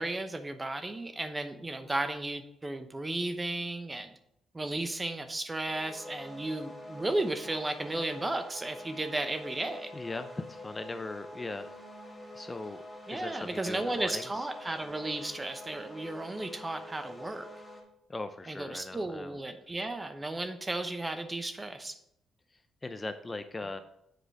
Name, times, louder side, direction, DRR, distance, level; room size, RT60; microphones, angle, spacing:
voice 1, 0.0-4.1 4.5-9.9 13.1-17.5 18.5-21.9, right 2 dB, 20° right, 9 dB, 0.8 m, -34 dB
sound 1, 5.7-17.8, left 1 dB, ahead, 1.9 m, -46 dB
voice 2, 9.9-11.7 12.3-12.8 13.1-14.5 18.1-19.4 22.5-23.8, left 2 dB, 20° left, 9 dB, 0.5 m, -39 dB
7.7 x 4.9 x 4.7 m, 0.77 s
cardioid pair, 90°, 0 cm